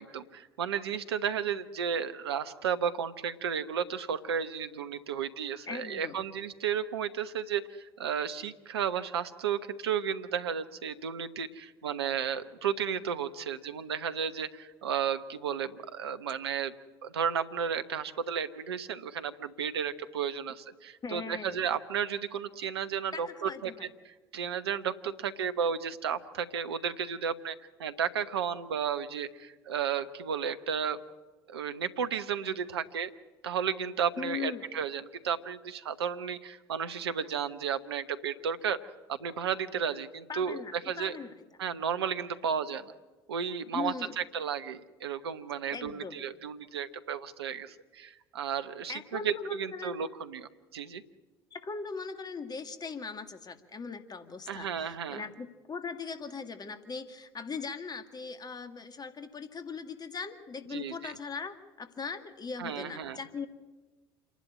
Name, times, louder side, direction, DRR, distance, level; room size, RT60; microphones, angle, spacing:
voice 1, 0.0-16.7 17.0-23.7 24.0-31.0 31.5-33.1 33.4-38.8 39.1-41.2 41.6-42.9 43.3-51.0 54.5-55.2 60.7-61.1 62.6-63.2, right 7 dB, 80° right, 11 dB, 1.0 m, -33 dB
voice 2, 5.7-6.2 21.0-21.6 23.1-23.9 34.2-34.7 40.3-41.4 43.7-44.2 45.7-46.2 48.9-50.0 51.5-63.5, left 5 dB, 30° left, 8 dB, 2.1 m, -39 dB
28.0 x 11.5 x 8.9 m, 1.2 s
hypercardioid pair, 60°, 13 cm